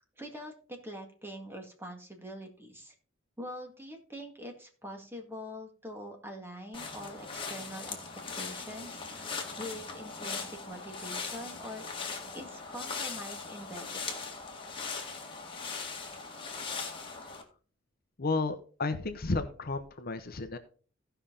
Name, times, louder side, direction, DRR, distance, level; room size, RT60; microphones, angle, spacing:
voice 1, 0.2-2.9 3.4-8.1 8.4-9.3 9.6-11.9 12.3-14.3, equal, 10° right, 3 dB, 1.9 m, -44 dB
sound 1, 6.7-17.4, left 4 dB, 25° left, 1.8 m, -40 dB
voice 2, 18.2-20.6, left 3 dB, 50° left, 9 dB, 0.9 m, -32 dB
16.0 x 5.7 x 3.8 m, 0.39 s
head